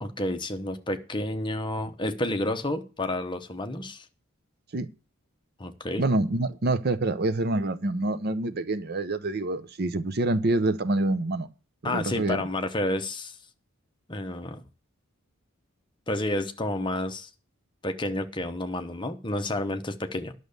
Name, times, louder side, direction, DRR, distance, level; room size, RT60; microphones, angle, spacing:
voice 1, 0.0-4.0 5.6-6.0 11.8-13.4 14.1-14.6 16.1-17.3 17.8-20.3, left 1 dB, 20° left, 0.9 m, -30 dB
voice 2, 6.0-11.5 11.8-12.4, right 2 dB, 45° right, 0.7 m, -26 dB
11.0 x 6.6 x 6.7 m
head